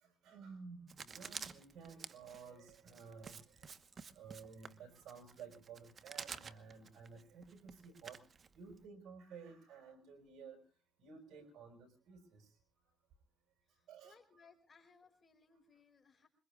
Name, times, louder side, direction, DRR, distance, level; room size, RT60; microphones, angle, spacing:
voice 1, 0.0-3.6 3.9-8.2 8.5-10.6 11.0-12.5 13.9-14.1, right 5 dB, 75° right, 6 dB, 5.0 m, -54 dB
Writing, 0.9-8.8, right 5 dB, 45° right, 1.1 m, -51 dB
voice 2, 13.6-16.3, left 5 dB, 35° left, 7 dB, 4.6 m, -66 dB
26.0 x 22.5 x 2.4 m, 0.36 s
cardioid pair, 90°, 0 cm